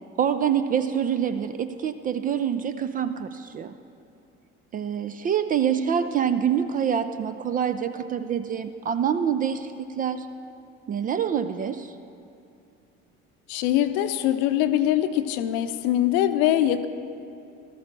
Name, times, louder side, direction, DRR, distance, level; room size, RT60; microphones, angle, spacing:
voice 1, 0.2-3.7 4.7-10.3 10.9-12.0, right 8 dB, 25° right, 11 dB, 0.4 m, -26 dB
voice 2, 13.5-16.9, left 12 dB, 55° left, 10 dB, 0.7 m, -23 dB
18.5 x 13.5 x 3.1 m, 2.6 s
figure-of-eight pair, 60°, 36 cm